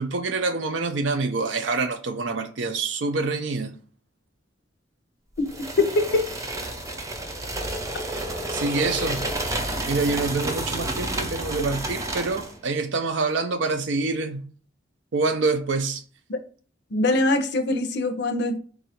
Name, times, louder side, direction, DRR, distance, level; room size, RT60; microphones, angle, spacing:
voice 1, 0.0-3.7 8.1-8.2 8.5-9.3 9.8-14.5 15.1-16.0, right 3 dB, 75° right, 0.6 m, -26 dB
voice 2, 5.4-6.2 16.3-16.4 16.9-18.6, left 2 dB, 65° left, 0.6 m, -23 dB
sound 1, 5.5-12.6, right 1 dB, 15° right, 0.5 m, -30 dB
3.8 x 2.4 x 4.3 m
head